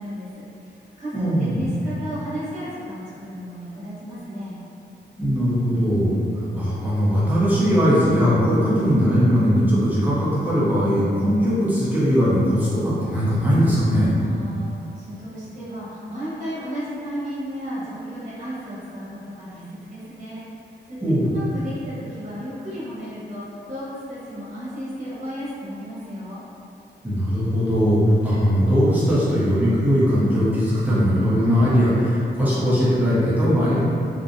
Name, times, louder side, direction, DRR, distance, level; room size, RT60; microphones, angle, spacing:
voice 1, 0.0-4.5 14.2-26.4, equal, 40° right, -11 dB, 1.0 m, -34 dB
voice 2, 1.1-1.7 5.2-14.2 21.0-21.3 27.0-33.8, equal, 10° right, -10 dB, 0.6 m, -20 dB
2.6 x 2.0 x 2.5 m, 2.7 s
wide cardioid pair, 160°, 19 cm